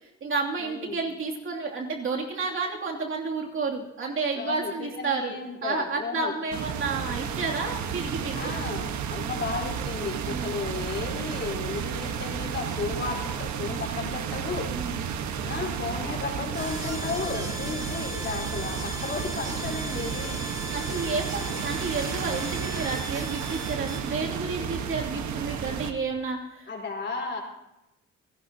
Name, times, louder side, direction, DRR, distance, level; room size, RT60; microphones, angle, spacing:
voice 1, 0.0-5.4 5.6-8.5 10.3-10.6 14.7-15.0 20.5-26.7, right 4 dB, 45° right, -1 dB, 2.8 m, -31 dB
voice 2, 0.6-1.0 4.4-6.3 8.3-14.8 15.4-20.4 26.7-27.4, left 4 dB, 40° left, -1 dB, 4.4 m, -34 dB
sound 1, 6.5-25.9, right 7 dB, 70° right, 1.4 m, -32 dB
sound 2, 16.5-24.0, right 1 dB, 15° right, 3.0 m, -37 dB
28.0 x 18.0 x 2.9 m, 0.90 s
cardioid pair, 135°, 29 cm